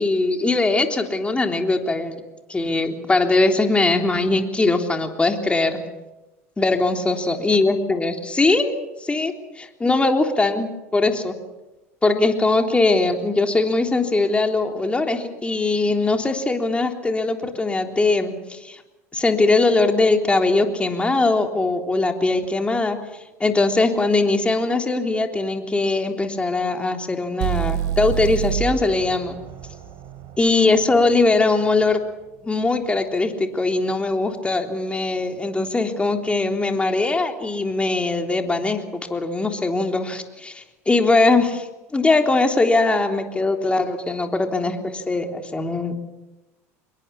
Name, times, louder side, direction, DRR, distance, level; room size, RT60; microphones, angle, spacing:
voice 1, 0.0-2.1 2.5-5.8 6.6-11.3 12.0-18.8 19.1-23.0 23.4-29.4 30.4-32.0 32.4-41.7 41.9-45.9, left 3 dB, 15° left, 4 dB, 3.5 m, -21 dB
sound 1, 27.4-31.3, right 10 dB, 60° right, 3.4 m, -28 dB
25.5 x 22.0 x 7.1 m, 1.0 s
hypercardioid pair, 80°, 8 cm